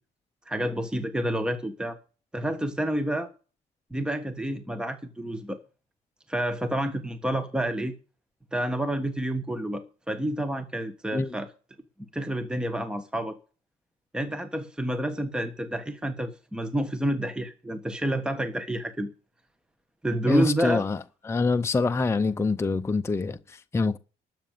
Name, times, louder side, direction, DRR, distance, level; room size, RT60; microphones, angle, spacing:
voice 1, 0.5-2.0 2.3-3.3 3.9-5.6 6.3-7.9 8.5-11.5 12.1-13.3 14.1-19.1 20.0-20.8, right 1 dB, 5° right, 1.3 m, -29 dB
voice 2, 20.2-24.0, left 3 dB, 15° left, 0.6 m, -26 dB
12.5 x 7.8 x 7.3 m
cardioid pair, 110°, 17 cm